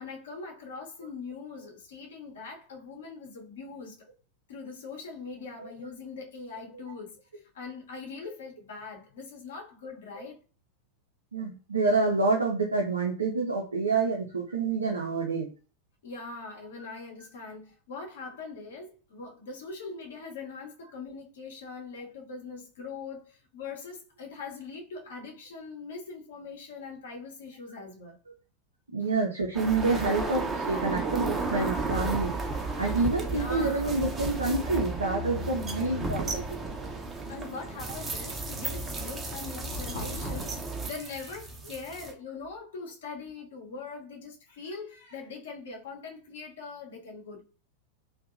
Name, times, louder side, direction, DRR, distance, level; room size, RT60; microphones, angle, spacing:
voice 1, 0.0-4.0 4.5-7.2 7.5-10.4 16.0-28.2 29.0-29.1 32.2-32.3 33.1-33.9 35.0-35.1 35.8-36.0 36.7-36.9 37.3-47.4, left 4 dB, 60° left, 0.8 m, -41 dB
voice 2, 11.3-15.5 28.9-32.3 32.8-36.5, right 3 dB, 75° right, 0.5 m, -28 dB
sound 1, 29.5-42.1, right 3 dB, 20° right, 0.6 m, -33 dB
2.7 x 2.1 x 2.5 m
figure-of-eight pair, 90°, 0 cm